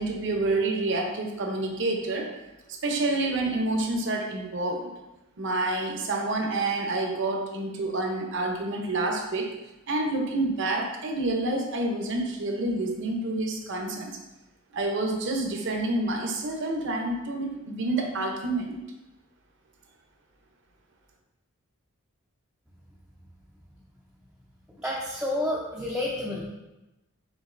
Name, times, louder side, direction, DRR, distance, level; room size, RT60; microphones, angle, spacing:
voice 1, 0.0-2.3 2.7-4.9 5.4-9.5 9.9-14.2 14.7-18.8, right 2 dB, 55° right, 2 dB, 0.7 m, -28 dB
voice 2, 24.8-26.5, left 1 dB, 5° right, -6 dB, 0.4 m, -29 dB
5.2 x 3.9 x 2.5 m, 0.98 s
head